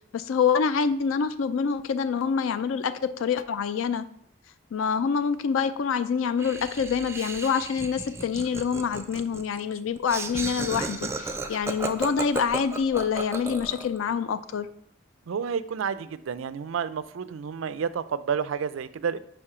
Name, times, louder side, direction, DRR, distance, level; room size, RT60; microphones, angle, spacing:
voice 1, 0.1-4.1 4.7-14.7, left 6 dB, 85° left, 13 dB, 0.4 m, -26 dB
Laughter, 6.4-14.0, right 3 dB, 15° right, 0.4 m, -34 dB
voice 2, 15.3-19.2, right 6 dB, 80° right, 14 dB, 0.4 m, -30 dB
5.2 x 4.3 x 4.9 m, 0.67 s
head